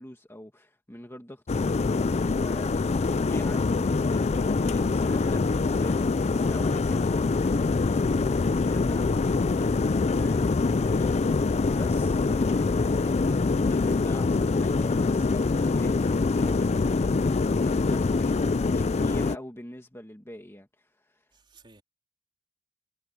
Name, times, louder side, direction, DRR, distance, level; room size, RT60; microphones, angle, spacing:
voice 1, 0.0-21.3, left 1 dB, 10° left, 2.1 m, -45 dB
kettle heat up froth, 1.5-19.4, left 3 dB, 30° left, 0.4 m, -24 dB
voice 2, 21.3-21.8, right 3 dB, 25° right, 4.0 m, -55 dB
head